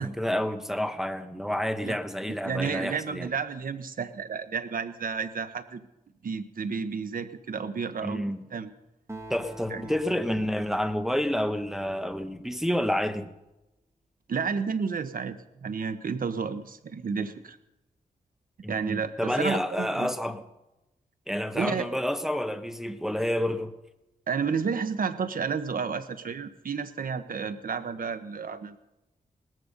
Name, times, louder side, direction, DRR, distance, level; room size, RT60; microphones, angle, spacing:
voice 1, 0.0-3.3 8.0-8.4 9.3-13.3 18.6-20.4 21.3-23.7, equal, 5° right, 8 dB, 1.2 m, -29 dB
voice 2, 2.3-5.8 6.2-8.2 8.5-8.7 9.7-9.9 14.3-17.6 18.7-20.1 21.5-21.9 24.3-28.8, right 5 dB, 70° right, 11 dB, 1.2 m, -31 dB
Acoustic guitar, 9.1-12.9, right 1 dB, 20° right, 2.5 m, -46 dB
19.0 x 14.0 x 5.4 m, 0.94 s
cardioid pair, 75°, 15 cm